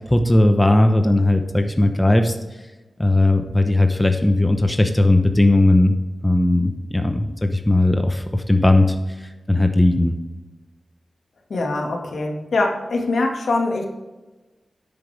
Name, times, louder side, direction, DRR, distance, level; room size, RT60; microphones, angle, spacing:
voice 1, 0.1-2.3 3.0-5.9 6.2-8.9 9.5-10.2, left 1 dB, 15° left, 6 dB, 0.9 m, -17 dB
voice 2, 11.5-13.9, left 2 dB, 75° left, 1 dB, 2.0 m, -23 dB
10.0 x 8.9 x 3.5 m, 1.2 s
cardioid pair, 70°, 0 cm